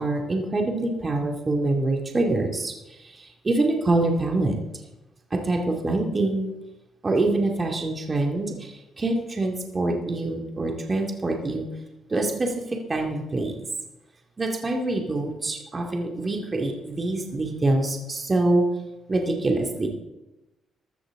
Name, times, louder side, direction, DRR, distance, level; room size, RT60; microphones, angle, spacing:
voice 1, 0.0-4.6 5.3-6.5 7.0-11.7 12.1-13.7 14.4-18.7 19.1-19.9, right 2 dB, 30° right, 2 dB, 2.2 m, -25 dB
14.5 x 13.0 x 3.8 m, 0.99 s
cardioid pair, 90°, 0 cm